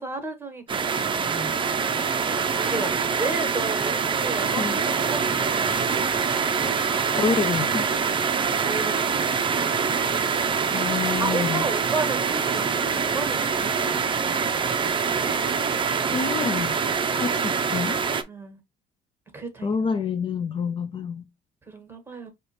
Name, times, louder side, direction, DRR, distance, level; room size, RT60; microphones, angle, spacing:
voice 1, 0.0-1.6 2.6-6.1 6.5-7.0 8.6-9.1 11.2-14.9 18.3-18.6 19.3-19.7 21.7-22.3, right 3 dB, 15° right, 1.5 m, -34 dB
sound 1, 0.7-18.2, right 6 dB, 30° right, 0.6 m, -25 dB
voice 2, 7.2-7.9 10.7-11.7 16.1-16.8 17.1-18.0 19.6-21.3, left 6 dB, 30° left, 0.4 m, -28 dB
4.7 x 3.0 x 3.1 m
cardioid pair, 110°, 17 cm